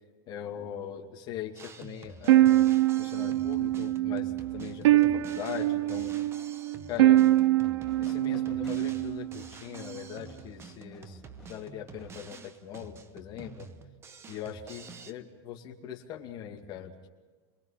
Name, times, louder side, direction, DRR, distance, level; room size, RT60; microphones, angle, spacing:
voice 1, 0.3-2.6 3.0-6.1 6.9-7.3 8.0-13.7 14.3-17.1, left 9 dB, 30° left, 1 dB, 2.4 m, -41 dB
Drum kit, 1.5-15.1, right 5 dB, 20° right, 1.0 m, -48 dB
sound 1, 2.3-9.4, right 15 dB, 85° right, 0.6 m, -24 dB
Fireworks, 7.3-12.9, left 3 dB, 5° left, 4.8 m, -57 dB
27.5 x 21.5 x 5.8 m, 1.4 s
supercardioid pair, 160°, 14 cm